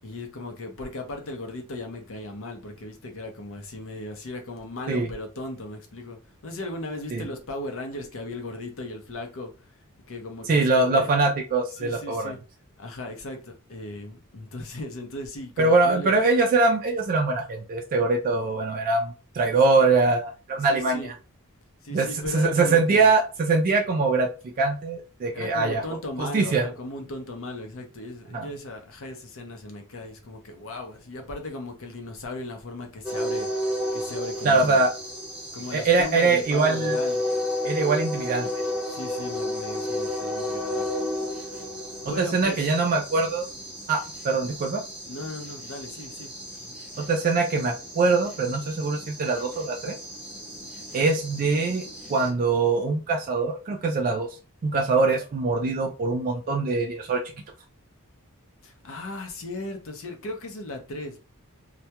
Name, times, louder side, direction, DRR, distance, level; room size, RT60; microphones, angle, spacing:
voice 1, 0.0-9.7 10.1-11.1 11.7-12.4 12.8-16.2 20.6-21.1 21.8-23.1 25.3-34.8 35.5-37.2 38.9-40.9 42.0-42.7 45.1-46.8 58.6-61.2, left 2 dB, 65° left, 0.6 m, -37 dB
voice 2, 10.5-12.3 15.6-21.1 21.9-22.1 22.3-25.8 26.2-26.7 28.3-28.5 34.4-34.9 35.7-37.0 37.6-38.5 42.1-43.5 43.9-44.8 47.0-50.0 50.9-51.8 52.1-54.3 54.6-57.2, right 3 dB, 40° right, 0.3 m, -23 dB
sound 1, 33.0-52.3, left 1 dB, 5° right, 0.9 m, -33 dB
2.2 x 2.2 x 2.8 m
head